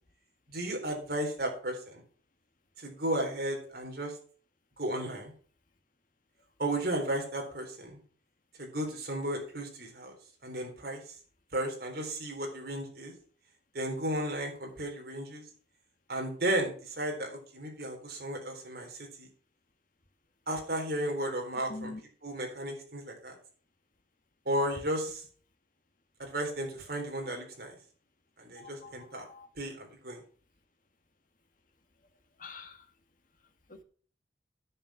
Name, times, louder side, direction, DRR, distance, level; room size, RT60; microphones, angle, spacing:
voice 1, 0.5-2.0 2.8-4.1 4.8-5.3 6.6-8.0 8.6-10.1 10.4-11.0 11.5-13.1 13.7-15.4 16.1-19.3 20.5-21.9 22.2-23.3 24.5-25.2 26.2-27.7 28.4-29.3 29.6-30.2, right 1 dB, 55° right, 1 dB, 3.9 m, -34 dB
voice 2, 21.7-22.0 28.6-29.5 32.4-32.9 33.7-33.8, left 3 dB, 45° left, 6 dB, 1.5 m, -45 dB
9.8 x 7.3 x 5.9 m, 0.43 s
head